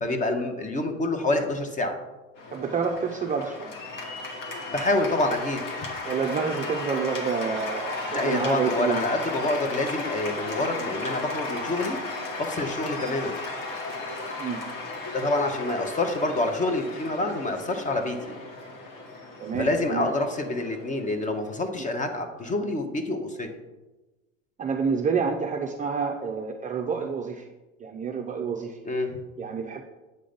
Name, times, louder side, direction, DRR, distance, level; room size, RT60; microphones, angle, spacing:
voice 1, 0.0-2.0 4.7-5.6 8.1-12.0 12.4-13.4 15.1-18.3 19.5-23.5 28.8-29.2, left 2 dB, 20° left, 6 dB, 0.9 m, -27 dB
Cheering / Applause, 2.4-21.6, left 3 dB, 50° left, 1.8 m, -35 dB
voice 2, 2.5-3.7 6.0-9.0 14.4-14.6 19.4-20.1 21.8-21.9 24.6-27.5 27.8-28.8 29.4-29.8, right 6 dB, 20° right, 2 dB, 0.6 m, -28 dB
7.9 x 3.7 x 5.2 m, 1.1 s
hypercardioid pair, 90°, 40 cm